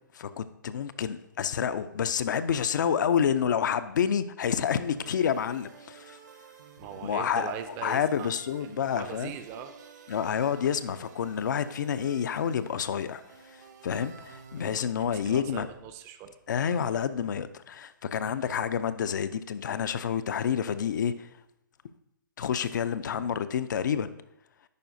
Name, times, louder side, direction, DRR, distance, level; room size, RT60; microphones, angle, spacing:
voice 1, 0.1-6.2 7.0-7.5 7.8-9.3 10.1-15.7 16.5-21.3 22.4-24.1, left 8 dB, 60° left, 12 dB, 0.4 m, -29 dB
sound 1, 4.7-14.9, right 6 dB, 60° right, 0.8 m, -51 dB
voice 2, 6.8-8.3 8.6-9.8 15.0-16.8, right 8 dB, 25° right, 10 dB, 0.4 m, -41 dB
10.5 x 4.2 x 2.6 m, 0.85 s
hypercardioid pair, 130°, 11 cm